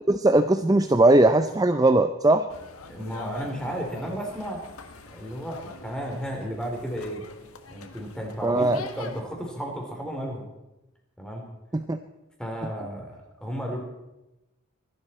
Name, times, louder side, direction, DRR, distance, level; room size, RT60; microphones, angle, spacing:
voice 1, 0.1-2.5 8.4-8.8 11.7-12.0, right 2 dB, 15° right, 9 dB, 0.4 m, -19 dB
sound 1, 2.5-9.2, left 3 dB, 80° left, 1.4 m, -45 dB
voice 2, 2.9-4.6 5.1-7.2 7.7-10.5 11.2-11.5 12.4-13.8, equal, 5° left, 1 dB, 3.2 m, -33 dB
23.5 x 12.0 x 4.3 m, 0.96 s
head